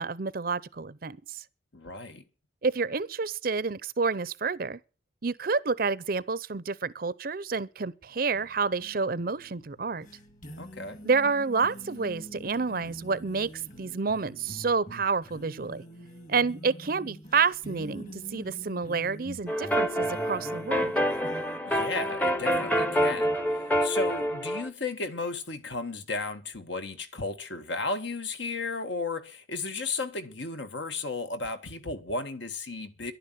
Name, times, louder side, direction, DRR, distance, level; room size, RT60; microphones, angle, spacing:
voice 1, 0.0-1.4 2.6-4.8 5.2-10.1 11.0-13.5 13.8-15.8 16.3-20.9, right 4 dB, 50° right, 0.6 m, -29 dB
voice 2, 1.7-2.2 10.6-11.0 21.6-33.1, left 3 dB, 70° left, 1.6 m, -34 dB
sound 1, 8.3-21.6, equal, 40° left, 2.3 m, -46 dB
sound 2, 19.5-24.7, equal, 10° left, 0.8 m, -27 dB
11.5 x 9.9 x 9.3 m
head